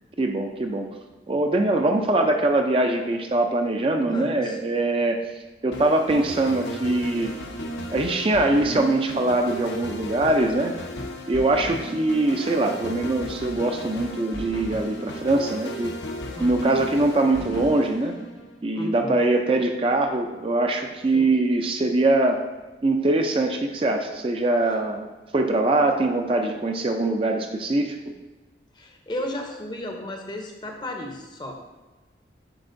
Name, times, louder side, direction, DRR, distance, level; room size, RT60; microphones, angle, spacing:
voice 1, 0.2-0.9 1.3-5.2 5.6-7.3 7.9-10.7 11.3-16.0 16.4-18.1 18.6-22.4 22.8-28.0, right 2 dB, 30° right, 4 dB, 0.4 m, -22 dB
voice 2, 4.0-4.6 16.3-16.6 18.7-19.2 21.1-21.4 24.7-24.8 28.7-31.5, left 1 dB, 25° left, 3 dB, 0.6 m, -34 dB
sound 1, 5.7-18.6, equal, 85° left, 0.8 m, -35 dB
10.5 x 4.2 x 2.6 m, 1.2 s
head